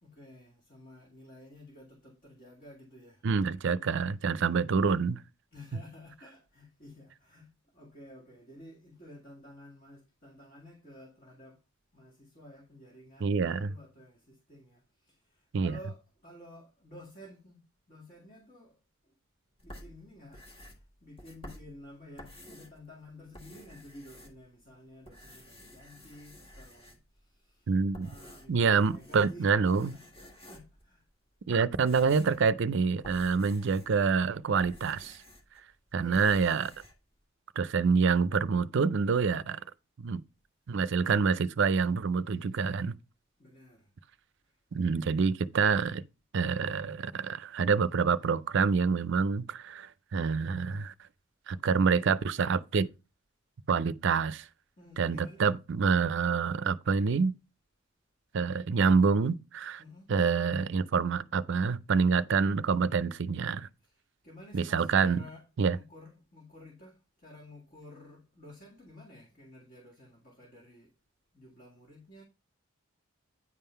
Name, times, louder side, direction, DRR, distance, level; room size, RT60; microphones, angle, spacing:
voice 1, 0.0-3.2 5.5-11.6 11.9-17.6 17.9-18.8 19.1-19.2 19.6-27.7 28.0-31.0 36.0-36.3 41.0-41.1 43.4-43.9 44.9-45.2 54.8-55.4 59.8-60.1 63.8-70.9 71.3-72.2, left 1 dB, 45° left, 2.0 m, -52 dB
voice 2, 3.2-5.2 13.2-13.7 15.5-15.8 27.7-28.1 28.5-29.9 31.5-35.2 35.9-36.7 37.6-39.6 40.0-40.2 40.7-42.9 44.7-46.0 46.3-50.9 51.5-52.9 53.7-54.5 55.0-57.3 58.3-59.8 60.1-63.7 64.5-65.2 65.6-65.8, right 5 dB, 55° right, 0.4 m, -27 dB
sound 1, 19.6-22.8 23.2-24.7 25.0-27.2 27.7-29.4 29.7-30.9 31.4-35.6 35.9-36.9, equal, 25° left, 1.7 m, -52 dB
9.6 x 3.7 x 5.6 m
head